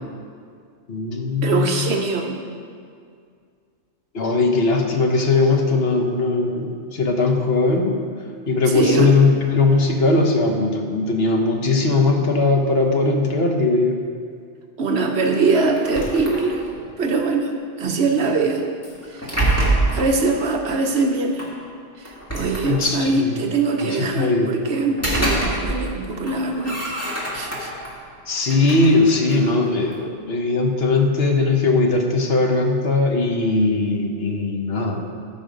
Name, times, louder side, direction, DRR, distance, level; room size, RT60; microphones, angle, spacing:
voice 1, 0.9-1.9 4.1-8.0 8.5-14.0 22.6-23.4 23.8-24.5 28.3-35.1, left 3 dB, 55° left, 2 dB, 1.2 m, -19 dB
voice 2, 1.4-2.4 8.6-9.1 14.8-16.6 17.0-17.5 17.8-18.6 19.1-19.3 19.9-21.5 22.0-27.0 27.3-27.7, right 3 dB, 60° right, 3 dB, 1.1 m, -22 dB
sound 1, 15.7-16.9 18.8-20.2 21.4-21.5 22.1-23.1 24.7-26.0 26.2-27.9 28.4-30.0, right 2 dB, 10° left, 1.9 m, -25 dB
14.0 x 5.6 x 5.1 m, 2.2 s
omnidirectional pair, 1.3 m